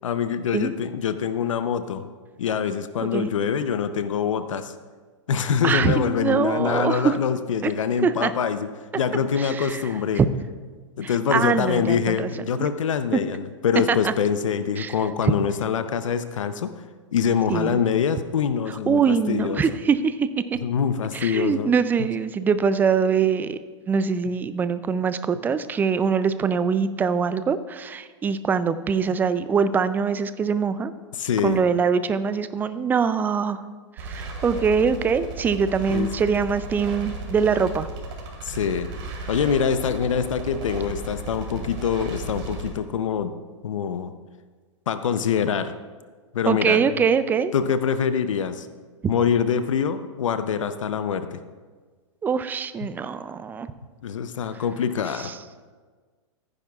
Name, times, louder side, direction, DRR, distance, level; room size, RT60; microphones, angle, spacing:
voice 1, 0.0-2.1 2.4-4.7 5.3-8.7 8.9-10.2 11.0-16.7 17.1-19.6 20.6-21.7 31.1-31.6 35.9-36.1 38.4-38.9 39.3-43.3 43.6-44.1 44.9-45.7 46.3-46.9 47.5-48.7 49.1-51.4 52.8-52.9 54.0-55.3, left 7 dB, 80° left, 11 dB, 0.6 m, -24 dB
voice 2, 5.6-7.2 7.6-7.7 8.0-8.3 9.4-9.8 10.2-10.3 11.0-12.3 12.6-12.7 13.9-14.0 14.8-14.9 15.2-15.3 17.5-17.8 18.9-20.4 21.1-23.6 23.9-30.9 31.4-33.6 34.0-37.9 46.5-47.5 49.0-49.1 52.2-53.7 55.1-55.4, right 6 dB, 10° right, 13 dB, 0.3 m, -23 dB
sound 1, 34.0-42.7, right 2 dB, 50° right, 2.6 m, -35 dB
15.0 x 9.9 x 2.3 m, 1.5 s
hypercardioid pair, 125°, 16 cm